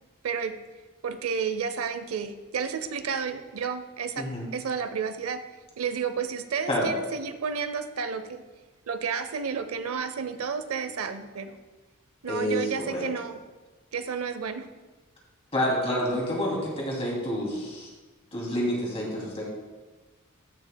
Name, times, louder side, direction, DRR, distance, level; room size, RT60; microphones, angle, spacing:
voice 1, 0.2-0.6 1.0-5.4 5.8-8.4 8.9-11.6 12.2-13.4 13.9-14.7, right 6 dB, 90° right, 10 dB, 0.6 m, -31 dB
voice 2, 12.3-13.0 15.5-17.9 18.3-19.4, equal, 30° left, -3 dB, 2.6 m, -28 dB
14.5 x 6.4 x 2.2 m, 1.2 s
head